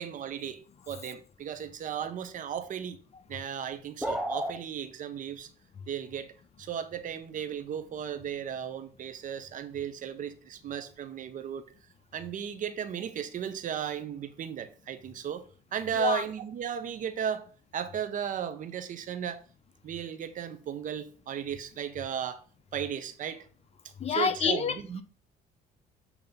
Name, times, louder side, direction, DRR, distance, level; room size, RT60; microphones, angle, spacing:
voice 1, 0.0-3.0 3.3-5.5 5.9-6.3 6.6-11.6 12.1-19.4 19.8-22.4 22.7-23.5 24.1-25.0, right 8 dB, 50° right, 0.8 m, -35 dB
sound 1, 4.0-4.6, equal, ahead, 0.9 m, -30 dB
voice 2, 24.0-24.7, left 6 dB, 40° left, 0.8 m, -27 dB
8.0 x 2.9 x 5.3 m
cardioid pair, 110°, 17 cm